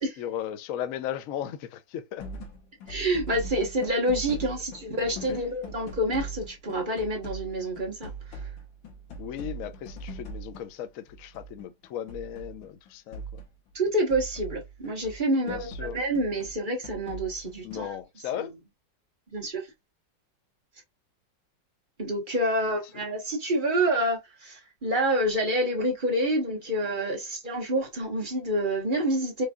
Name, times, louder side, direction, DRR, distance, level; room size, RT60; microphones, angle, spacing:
voice 1, 0.2-2.3 5.3-5.4 9.2-13.2 15.5-16.0 17.6-18.5, left 10 dB, 65° left, 0.8 m, -36 dB
sound 1, 2.2-15.2 15.5-17.9, right 2 dB, 85° left, 1.9 m, -41 dB
voice 2, 2.9-8.4 13.7-17.9 18.4-18.5 19.3-19.7 22.0-29.5, right 1 dB, 30° right, 1.4 m, -28 dB
5.1 x 3.3 x 2.3 m
omnidirectional pair, 2.0 m